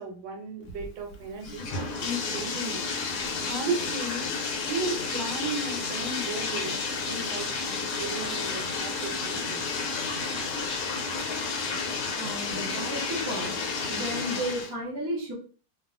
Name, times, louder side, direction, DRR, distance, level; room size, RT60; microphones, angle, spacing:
voice 1, 0.0-1.7 2.0-2.8 3.4-4.3 4.6-6.8 7.1-9.6, right 3 dB, 80° right, 2 dB, 1.4 m, -35 dB
Bathtub (filling or washing), 0.7-14.7, left 4 dB, 70° left, 1.1 m, -31 dB
voice 2, 12.2-13.6 13.9-15.3, equal, 35° right, -4 dB, 0.3 m, -33 dB
3.0 x 2.3 x 2.5 m, 0.39 s
omnidirectional pair, 2.0 m